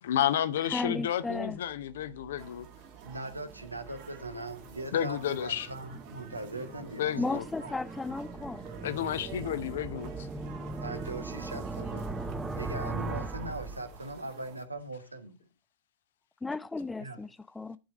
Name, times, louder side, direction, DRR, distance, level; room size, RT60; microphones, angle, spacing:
voice 1, 0.0-2.7 4.9-5.7 7.0-7.4 8.8-10.3, left 10 dB, 60° left, 0.7 m, -31 dB
voice 2, 0.7-1.6 7.2-8.7 16.4-17.8, left 3 dB, 10° left, 0.4 m, -34 dB
sound 1, 1.4-14.3, right 3 dB, 10° right, 0.8 m, -41 dB
sound 2, 2.4-14.6, right 8 dB, 45° right, 1.6 m, -51 dB
voice 3, 3.0-7.2 7.6-7.7 10.8-12.1 12.5-15.4 17.0-17.2, right 2 dB, 85° right, 1.1 m, -40 dB
11.5 x 4.7 x 5.2 m
figure-of-eight pair, 90°, 0 cm